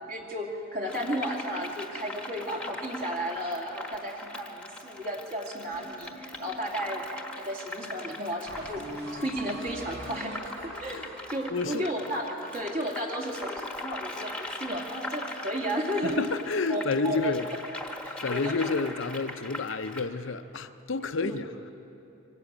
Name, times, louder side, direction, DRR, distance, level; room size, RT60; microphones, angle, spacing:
voice 1, 0.1-7.0 7.4-10.4 10.6-11.0 11.3-16.2 16.7-17.3 18.0-18.7 21.2-21.4, equal, 45° right, 2.5 m, -33 dB
sound 1, 0.9-20.1, left 2 dB, 5° left, 1.2 m, -41 dB
sound 2, 5.7-7.3 7.8-7.9 8.5-12.6, right 1 dB, 80° right, 4.6 m, -43 dB
voice 2, 11.5-11.9 16.0-17.5 18.2-21.5, left 3 dB, 65° left, 0.7 m, -30 dB
24.0 x 13.0 x 8.7 m
head